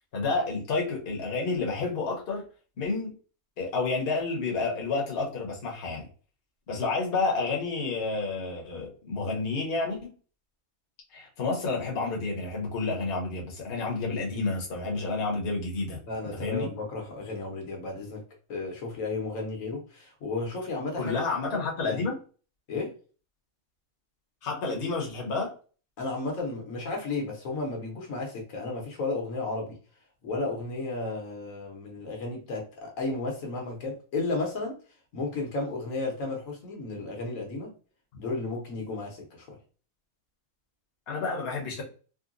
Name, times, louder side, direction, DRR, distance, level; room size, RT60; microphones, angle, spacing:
voice 1, 0.1-2.4 2.8-3.1 3.6-6.1 6.7-10.1 11.1-16.0 16.3-16.7 21.0-22.2 24.4-25.5 41.1-41.8, left 3 dB, 50° left, -1 dB, 1.0 m, -30 dB
voice 2, 16.1-18.2 18.5-21.2 21.5-22.1 22.7-22.9 26.0-29.8 30.2-34.8 35.1-37.7 38.2-39.6, left 3 dB, 75° left, 1 dB, 1.3 m, -33 dB
3.7 x 2.1 x 2.4 m, 0.38 s
omnidirectional pair, 1.4 m